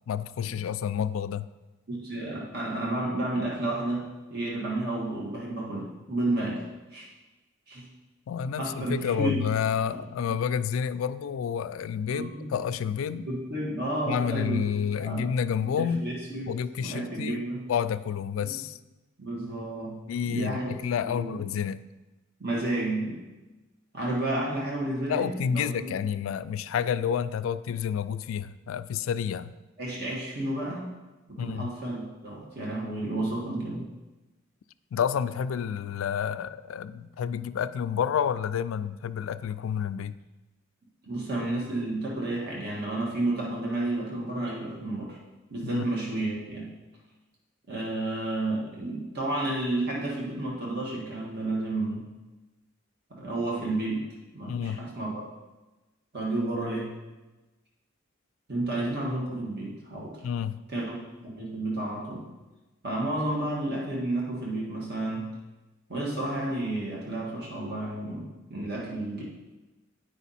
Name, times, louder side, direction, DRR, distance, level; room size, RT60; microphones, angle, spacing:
voice 1, 0.0-1.5 8.3-13.3 14.1-16.1 16.5-17.4 17.7-18.8 20.1-21.8 25.1-29.5 31.4-31.7 34.9-40.1 45.7-45.9 54.5-54.8 60.2-60.6, left 7 dB, 70° left, 13 dB, 0.3 m, -29 dB
voice 2, 1.9-4.0 4.3-6.6 6.9-7.1 7.7-7.9 8.6-9.5 9.9-10.0 12.1-12.5 13.2-14.6 14.9-15.3 15.6-16.5 16.8-17.6 18.4-18.6 19.2-20.0 20.2-20.7 21.0-21.4 22.4-23.2 23.9-25.9 29.8-30.9 31.3-33.9 41.0-45.2 45.5-46.7 47.7-52.1 53.1-54.0 54.3-55.2 56.1-56.9 58.5-60.1 60.7-61.0 61.2-62.2 62.8-65.3 65.9-69.2, right 2 dB, 50° right, -4 dB, 1.5 m, -31 dB
9.1 x 5.2 x 4.1 m, 1.1 s
head